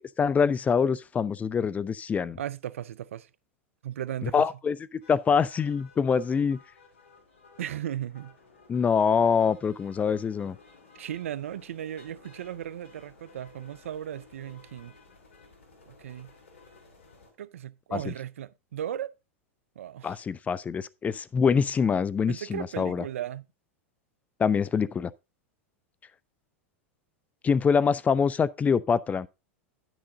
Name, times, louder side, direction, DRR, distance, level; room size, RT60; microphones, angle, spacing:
voice 1, 0.2-2.4 4.2-6.6 8.7-10.6 17.9-18.1 20.0-23.0 24.4-25.1 27.4-29.3, left 6 dB, 20° left, 0.4 m, -25 dB
voice 2, 2.4-3.3 3.8-4.4 7.6-8.3 11.0-15.0 15.9-16.3 17.4-19.1 19.8-20.2 22.3-23.4, right 11 dB, 80° right, 0.4 m, -36 dB
sound 1, 5.0-17.3, left 4 dB, 80° left, 2.5 m, -55 dB
9.7 x 6.1 x 3.7 m
hypercardioid pair, 100°, 7 cm